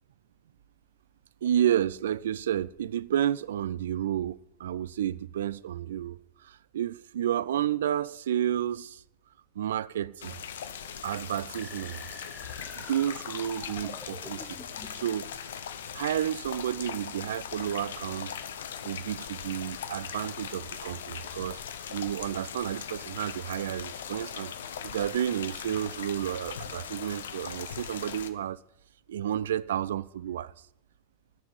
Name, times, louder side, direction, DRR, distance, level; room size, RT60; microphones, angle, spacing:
voice 1, 1.4-9.0 9.6-10.4 11.0-12.0 12.9-14.6 14.9-15.3 15.9-18.3 18.8-28.6 29.1-30.5, right 10 dB, 60° right, 0.3 m, -31 dB
sound 1, 10.2-28.3, left 8 dB, 60° left, 0.8 m, -40 dB
sound 2, 11.6-15.1, left 2 dB, 10° left, 1.4 m, -47 dB
10.0 x 6.9 x 8.2 m
figure-of-eight pair, 90°, 0 cm